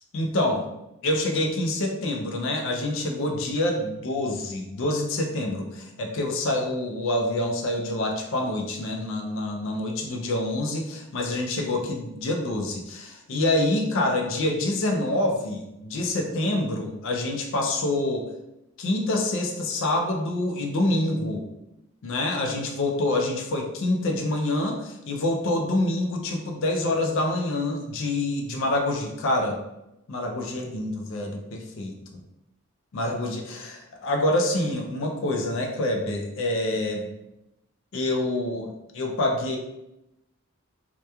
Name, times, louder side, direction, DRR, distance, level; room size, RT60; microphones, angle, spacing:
voice 1, 0.1-0.7 1.0-18.3 18.8-21.4 22.0-29.6 30.1-32.2 32.9-37.1 37.9-39.6, left 1 dB, 60° left, 2 dB, 0.4 m, -26 dB
2.8 x 2.2 x 2.2 m, 0.89 s
head